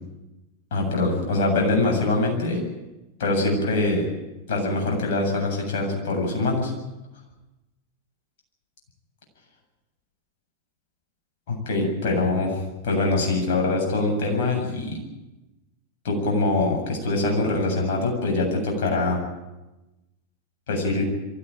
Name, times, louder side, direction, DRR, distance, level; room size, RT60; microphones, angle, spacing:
voice 1, 0.7-2.6 3.2-4.1 4.5-6.7 11.5-15.0 16.0-19.2 20.7-21.0, left 2 dB, 55° left, 1 dB, 7.7 m, -23 dB
23.0 x 15.0 x 9.3 m, 1.0 s
figure-of-eight pair, 90°, 0 cm